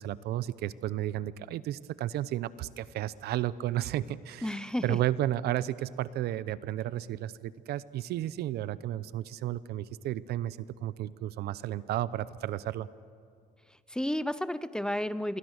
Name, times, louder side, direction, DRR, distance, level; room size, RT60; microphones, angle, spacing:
voice 1, 0.0-4.5 4.8-12.9, right 13 dB, 75° right, 17 dB, 0.7 m, -33 dB
voice 2, 4.4-5.0 13.9-15.4, left 1 dB, 5° left, 15 dB, 0.6 m, -32 dB
27.0 x 23.0 x 6.5 m, 2.3 s
cardioid pair, 110°, 17 cm